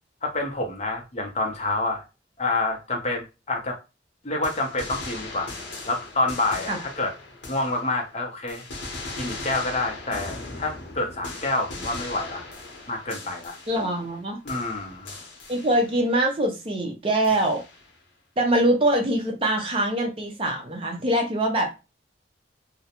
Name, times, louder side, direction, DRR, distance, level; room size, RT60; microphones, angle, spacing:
voice 1, 0.2-2.0 2.4-3.8 4.2-5.5 5.9-7.1 7.5-8.6 9.2-12.4 12.9-13.6 14.4-15.2, left 2 dB, 35° left, 2 dB, 0.5 m, -28 dB
sound 1, 4.4-8.1 8.5-14.2 14.5-16.1 17.2-18.0, left 2 dB, 75° left, 0.7 m, -39 dB
voice 2, 13.7-14.4 15.5-17.6 18.4-21.7, right 1 dB, 30° right, 2 dB, 0.5 m, -23 dB
2.4 x 2.0 x 2.8 m, 0.28 s
head